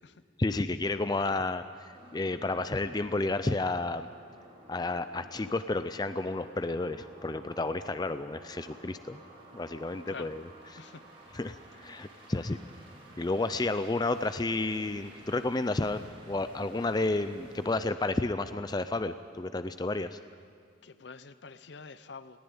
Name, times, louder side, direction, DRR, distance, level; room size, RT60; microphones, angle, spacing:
voice 1, 0.4-4.1 4.7-9.2 9.5-10.4 10.7-10.8 11.3-12.6 13.2-20.2, left 2 dB, 20° left, 0.4 m, -31 dB
sound 1, 1.9-17.8, right 1 dB, 30° right, 3.5 m, -53 dB
voice 2, 10.1-10.4 10.8-11.0 20.8-22.4, left 4 dB, 65° left, 0.7 m, -46 dB
20.5 x 15.5 x 8.8 m
head